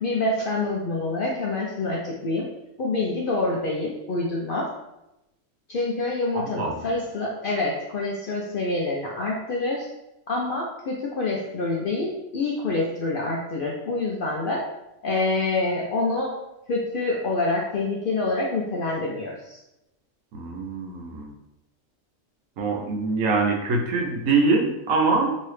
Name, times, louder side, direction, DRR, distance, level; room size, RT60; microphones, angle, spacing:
voice 1, 0.0-2.5 2.8-4.7 5.7-9.9 10.3-14.6 15.0-16.3 16.7-19.6, left 2 dB, 65° left, -2 dB, 0.5 m, -26 dB
voice 2, 6.3-6.8 20.3-21.3 22.6-25.4, right 3 dB, 80° right, 1 dB, 1.0 m, -24 dB
3.0 x 2.7 x 3.1 m, 0.91 s
omnidirectional pair, 1.4 m